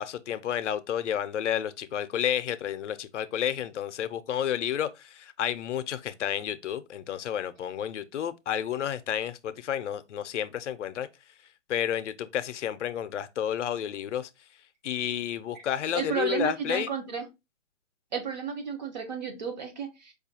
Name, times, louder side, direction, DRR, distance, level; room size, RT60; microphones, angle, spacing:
voice 1, 0.0-11.1 11.7-14.3 14.8-16.9, left 10 dB, 75° left, 0.5 m, -31 dB
voice 2, 15.9-17.3 18.1-20.1, right 6 dB, 35° right, 0.8 m, -32 dB
4.8 x 2.3 x 2.7 m
hypercardioid pair, 165°, 37 cm